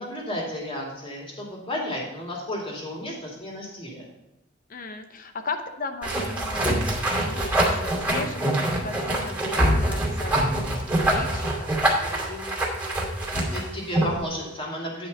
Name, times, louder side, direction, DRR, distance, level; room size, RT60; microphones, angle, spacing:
voice 1, 0.0-4.1 13.1-15.1, left 1 dB, 30° left, -2 dB, 2.7 m, -33 dB
voice 2, 4.7-8.5 8.8-12.6, left 3 dB, 45° left, 7 dB, 0.8 m, -37 dB
sound 1, 6.0-14.2, right 1 dB, 10° right, 2.5 m, -24 dB
9.8 x 5.5 x 5.4 m, 0.89 s
head